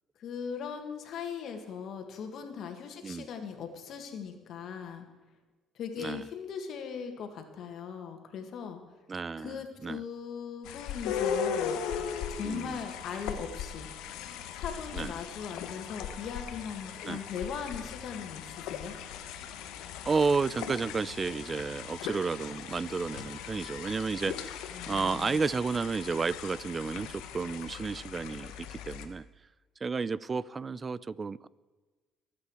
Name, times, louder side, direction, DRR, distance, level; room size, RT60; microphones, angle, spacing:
voice 1, 0.2-5.0 5.8-8.8 9.4-11.8 12.3-13.9 14.5-18.9 24.7-25.4, left 7 dB, 65° left, 5 dB, 2.1 m, -39 dB
voice 2, 9.1-10.0 12.4-12.8 14.9-15.1 17.0-17.2 20.1-29.3 29.8-31.5, right 4 dB, 35° right, 20 dB, 0.5 m, -32 dB
sound 1, 10.6-29.1, left 7 dB, 80° left, 1.2 m, -38 dB
24.0 x 8.5 x 4.9 m, 1.3 s
supercardioid pair, 75°, 0 cm